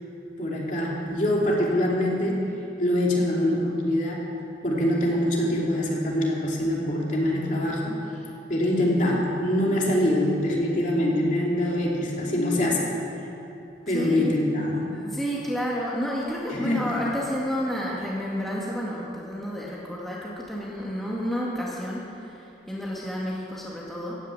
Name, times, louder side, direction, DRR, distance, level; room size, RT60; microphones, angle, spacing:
voice 1, 0.4-2.4 2.8-4.2 4.6-8.0 8.5-12.9 13.9-14.9 16.5-17.0, left 1 dB, 40° left, -3 dB, 2.9 m, -24 dB
voice 2, 13.9-14.3 14.9-24.2, equal, ahead, -6 dB, 2.0 m, -30 dB
15.0 x 10.0 x 8.7 m, 2.8 s
head